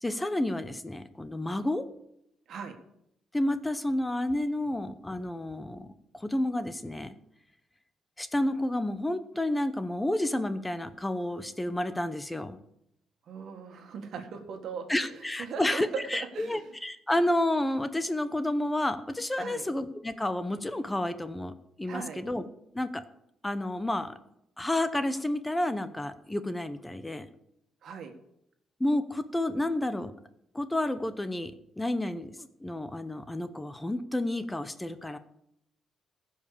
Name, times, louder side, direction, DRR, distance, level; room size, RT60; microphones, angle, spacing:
voice 1, 0.0-1.9 3.3-7.1 8.2-12.6 14.9-21.5 21.8-22.5 22.7-23.0 23.4-24.2 24.6-27.3 28.8-30.1 30.5-35.2, left 1 dB, 10° left, 11 dB, 0.8 m, -30 dB
voice 2, 13.2-16.7 19.4-19.6 21.9-22.2 27.8-28.1, right 6 dB, 65° right, 5 dB, 1.7 m, -39 dB
15.0 x 5.6 x 6.9 m, 0.78 s
cardioid pair, 90°, 0 cm